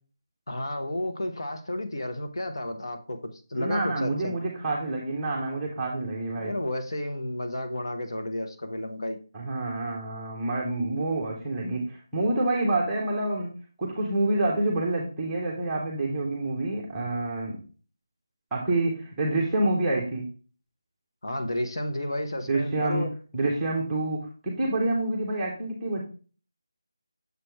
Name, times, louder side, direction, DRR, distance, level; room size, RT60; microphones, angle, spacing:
voice 1, 0.5-4.3 6.4-9.2 21.2-23.1, left 1 dB, 75° left, 6 dB, 1.1 m, -32 dB
voice 2, 3.5-6.5 9.3-13.5 13.8-17.6 18.5-20.3 22.5-23.1 23.3-26.0, right 2 dB, 5° right, -5 dB, 0.6 m, -27 dB
6.7 x 3.3 x 4.4 m, 0.37 s
figure-of-eight pair, 180°, 2 cm